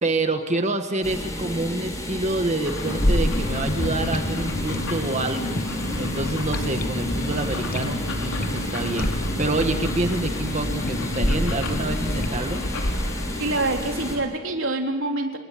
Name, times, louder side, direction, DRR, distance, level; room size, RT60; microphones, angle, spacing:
voice 1, 0.0-5.6 6.0-12.6, right 2 dB, 35° right, 6 dB, 1.6 m, -27 dB
sound 1, 1.0-14.2, equal, 15° left, 4.7 m, -31 dB
sound 2, 2.6-14.3, left 1 dB, 85° left, 4.6 m, -30 dB
sound 3, 2.8-12.3, left 2 dB, 45° left, 1.4 m, -31 dB
voice 2, 13.4-15.4, right 2 dB, 70° right, 2 dB, 3.8 m, -25 dB
29.5 x 19.5 x 8.6 m, 1.3 s
head